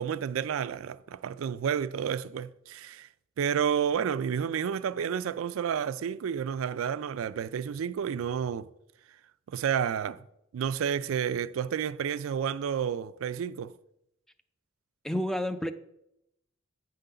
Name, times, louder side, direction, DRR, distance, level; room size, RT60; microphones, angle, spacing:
voice 1, 0.0-3.1 3.4-8.7 9.5-10.2 10.5-13.7, right 8 dB, 75° right, 0.3 m, -30 dB
voice 2, 15.0-15.7, left 1 dB, ahead, 0.4 m, -29 dB
8.9 x 3.8 x 6.6 m
head